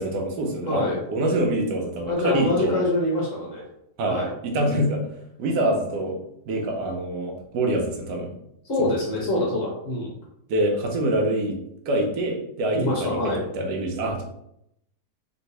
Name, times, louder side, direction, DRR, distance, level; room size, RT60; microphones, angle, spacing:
voice 1, 0.0-2.8 4.0-6.2 6.5-8.3 10.5-11.6 11.9-14.2, right 1 dB, 80° right, 1 dB, 1.3 m, -25 dB
voice 2, 0.7-1.0 2.1-3.6 4.1-4.3 8.7-10.1 12.7-13.4, left 1 dB, 55° left, -3 dB, 1.2 m, -25 dB
3.1 x 3.0 x 2.7 m, 0.76 s
omnidirectional pair, 1.8 m